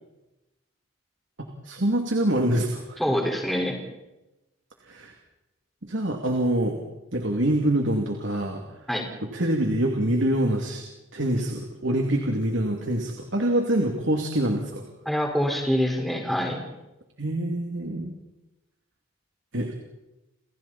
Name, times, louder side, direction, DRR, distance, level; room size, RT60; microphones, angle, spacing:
voice 1, 1.6-3.0 4.9-5.1 5.8-6.8 7.1-8.6 9.3-10.8 11.1-14.8 17.2-18.1 19.5-19.7, right 1 dB, 65° right, 2 dB, 2.8 m, -25 dB
voice 2, 3.0-3.8 8.9-9.1 15.0-16.6, equal, ahead, 0 dB, 5.0 m, -25 dB
30.0 x 29.0 x 4.4 m, 0.99 s
head